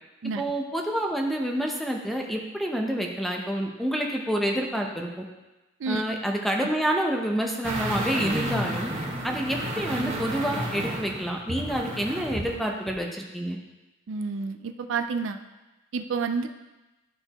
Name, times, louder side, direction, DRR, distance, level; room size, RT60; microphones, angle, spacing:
voice 1, 0.4-5.3 5.9-8.9 9.2-13.6, equal, ahead, 1 dB, 0.7 m, -28 dB
sound 1, 7.6-12.5 12.9-13.0, right 1 dB, 35° right, 1.3 m, -31 dB
voice 2, 14.1-15.4 15.9-16.5, right 5 dB, 65° right, 7 dB, 0.4 m, -29 dB
12.0 x 4.4 x 3.0 m, 1.1 s
head